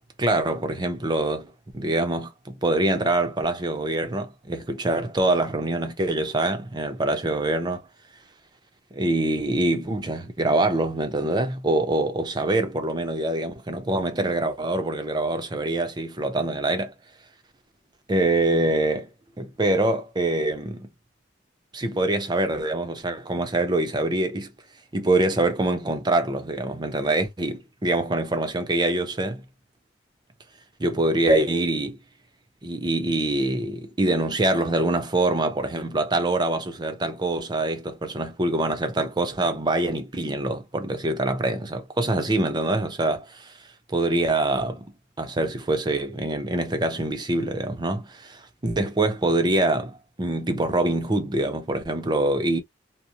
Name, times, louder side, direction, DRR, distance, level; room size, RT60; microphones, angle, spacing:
voice 1, 0.2-7.8 8.9-16.9 18.1-19.1 19.4-20.9 21.7-24.5 24.9-29.4 30.8-32.0 32.6-43.5 43.9-44.9 45.2-52.6, right 2 dB, 25° right, 0.5 m, -24 dB
2.8 x 2.0 x 2.4 m
head